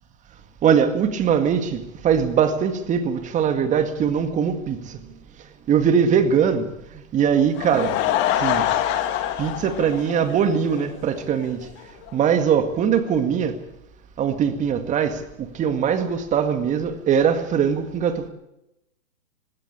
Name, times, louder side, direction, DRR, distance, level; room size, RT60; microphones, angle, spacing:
voice 1, 0.6-5.0 5.7-6.7 6.9-8.0 8.4-8.7 9.4-11.7 12.1-13.6 14.2-18.3, right 7 dB, 15° right, 1.9 m, -21 dB
Laughter / Crowd, 7.4-10.8 11.2-11.3 11.8-11.9 12.1-12.2, left 12 dB, 30° left, 2.1 m, -25 dB
20.5 x 16.5 x 8.6 m
hypercardioid pair, 140°, 41 cm